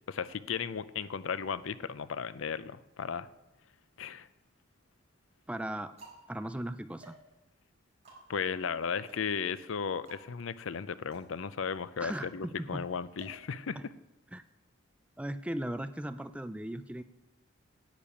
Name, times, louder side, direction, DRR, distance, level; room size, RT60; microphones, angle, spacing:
voice 1, 0.1-3.3 4.0-4.3 8.3-13.9, left 6 dB, 80° left, 15 dB, 0.5 m, -35 dB
sound 1, 4.4-4.7 5.4-14.2, right 2 dB, 35° right, 4.4 m, -57 dB
voice 2, 5.5-5.9 6.3-7.1 12.0-12.9 13.8-13.9 14.3-14.4 15.2-17.0, right 1 dB, 5° right, 11 dB, 0.3 m, -37 dB
10.5 x 7.0 x 8.4 m, 1.0 s
head